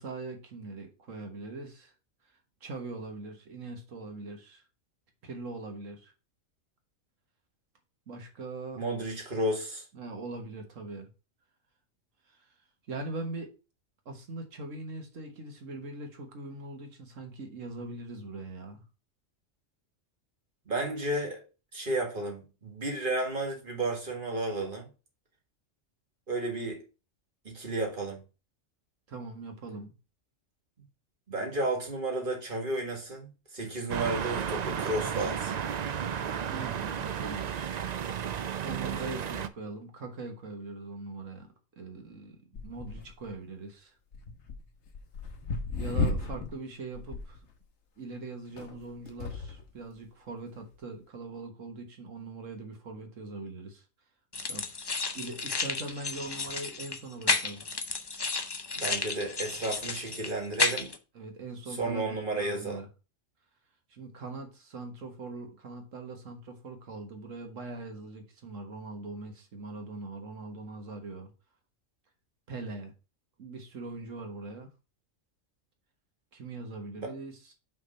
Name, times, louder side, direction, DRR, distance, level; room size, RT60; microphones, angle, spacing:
voice 1, 0.0-1.9 2.6-4.6 5.2-6.1 8.1-8.8 9.9-11.1 12.3-12.5 12.9-13.5 14.1-18.8 29.1-30.0 36.5-37.7 38.6-43.9 45.8-47.4 48.0-53.9 54.5-54.8 55.1-57.6 61.2-62.1 62.4-62.9 63.9-71.3 72.5-72.9 73.4-74.7 76.3-77.5, right 3 dB, 85° right, 1.8 m, -41 dB
voice 2, 8.8-9.9 20.7-21.4 21.7-24.9 26.3-26.8 27.5-28.2 31.3-35.6 38.8-38.9 58.7-60.9 61.7-62.8 77.0-77.1, right 2 dB, 45° right, 1.9 m, -32 dB
sound 1, 33.9-39.5, right 8 dB, 70° right, 0.4 m, -33 dB
sound 2, 42.5-43.3 44.1-46.6 46.9-47.4 48.5-49.7 50.5-50.6, left 3 dB, 65° left, 1.3 m, -34 dB
sound 3, 54.3-61.0, left 4 dB, 30° left, 0.5 m, -32 dB
6.0 x 3.6 x 5.4 m
omnidirectional pair, 1.3 m